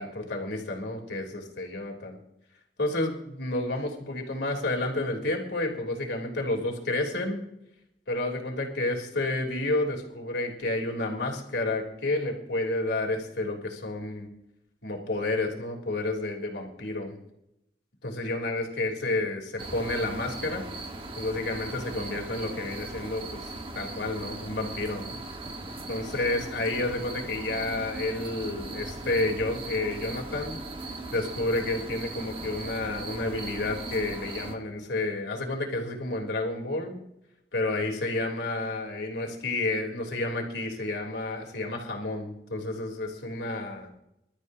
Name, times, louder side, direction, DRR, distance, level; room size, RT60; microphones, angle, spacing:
voice 1, 0.0-2.2 2.8-7.4 8.1-14.3 14.8-17.2 18.0-20.6 21.2-23.5 23.7-25.2 25.9-30.6 31.1-37.0 37.5-43.9, left 2 dB, 90° left, 1 dB, 3.5 m, -30 dB
sound 1, 19.6-34.6, right 2 dB, 30° right, 1.5 m, -38 dB
27.5 x 13.0 x 2.8 m, 0.83 s
head